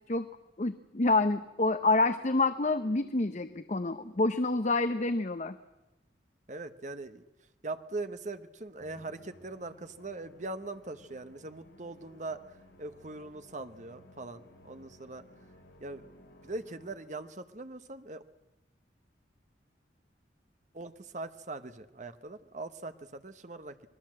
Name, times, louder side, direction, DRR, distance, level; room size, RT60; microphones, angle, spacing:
voice 1, 0.6-5.6, left 2 dB, 40° left, 11 dB, 0.7 m, -28 dB
voice 2, 6.5-7.2 7.6-15.2 15.8-16.1 16.4-18.2 20.7-23.7, right 2 dB, 40° right, 10 dB, 1.1 m, -41 dB
Musical instrument, 8.8-17.3, left 1 dB, 75° left, 4.0 m, -58 dB
26.0 x 20.0 x 7.6 m, 0.97 s
head